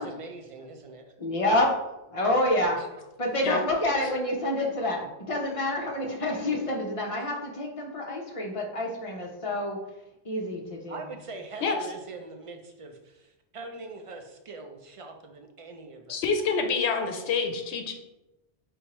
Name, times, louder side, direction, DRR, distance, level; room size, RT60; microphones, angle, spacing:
voice 1, 0.0-1.0 2.8-2.9 10.9-16.2, right 3 dB, 60° right, 4 dB, 0.3 m, -43 dB
voice 2, 1.2-1.7 2.1-2.8 3.2-9.8 10.2-11.0, left 1 dB, 35° left, 0 dB, 0.7 m, -28 dB
voice 3, 16.1-17.9, left 5 dB, 80° left, 4 dB, 0.8 m, -27 dB
4.4 x 3.5 x 2.9 m, 0.97 s
omnidirectional pair, 1.1 m